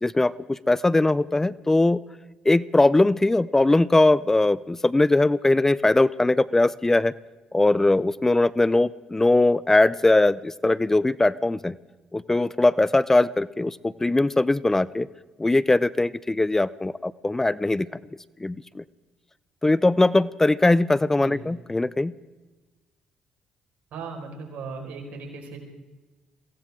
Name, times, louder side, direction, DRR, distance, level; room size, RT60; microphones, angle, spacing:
voice 1, 0.0-2.0 2.4-7.1 7.5-11.8 12.1-15.1 15.4-17.9 18.4-18.8 19.6-22.1, left 2 dB, 15° left, 19 dB, 0.5 m, -20 dB
voice 2, 23.9-25.6, right 4 dB, 75° right, 0 dB, 5.0 m, -37 dB
23.0 x 17.0 x 3.7 m, 1.2 s
supercardioid pair, 70°, 3 cm